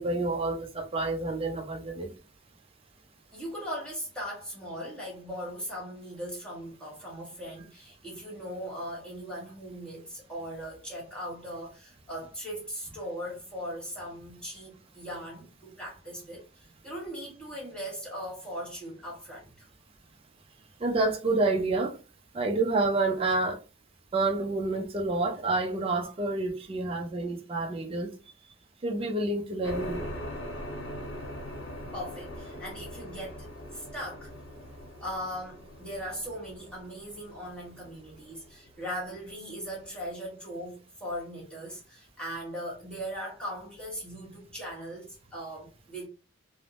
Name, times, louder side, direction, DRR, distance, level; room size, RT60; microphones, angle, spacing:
voice 1, 0.0-2.1 20.8-22.0 22.3-23.6 24.1-28.1 28.8-30.0, right 2 dB, 30° right, 0.4 m, -28 dB
voice 2, 3.3-19.5 31.9-33.5 33.7-34.3 35.0-46.1, equal, 5° left, 1.2 m, -39 dB
sound 1, 29.6-39.8, equal, 55° left, 0.9 m, -42 dB
3.3 x 2.0 x 2.4 m
head